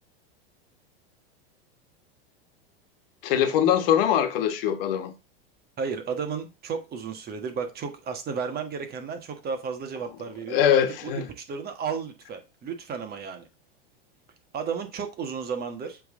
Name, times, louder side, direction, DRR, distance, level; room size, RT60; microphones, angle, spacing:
voice 1, 3.2-5.1 10.5-11.3, left 9 dB, 65° left, 1.4 m, -22 dB
voice 2, 5.8-13.5 14.5-16.0, right 6 dB, 30° right, 1.4 m, -33 dB
7.7 x 3.6 x 3.7 m
hypercardioid pair, 115°, 30 cm